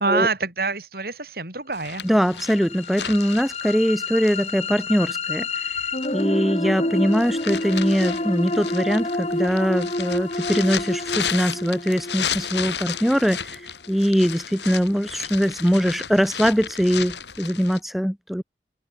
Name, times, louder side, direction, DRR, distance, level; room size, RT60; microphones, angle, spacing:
voice 1, 0.0-2.0, right 3 dB, 55° right, 7.8 m, -25 dB
sound 1, 1.7-6.3 6.8-17.8, left 8 dB, 80° left, 7.8 m, -34 dB
voice 2, 2.0-5.5 6.1-13.6 13.9-18.4, equal, ahead, 4.3 m, -22 dB
sound 2, 2.1-14.1, left 2 dB, 35° left, 3.4 m, -29 dB
head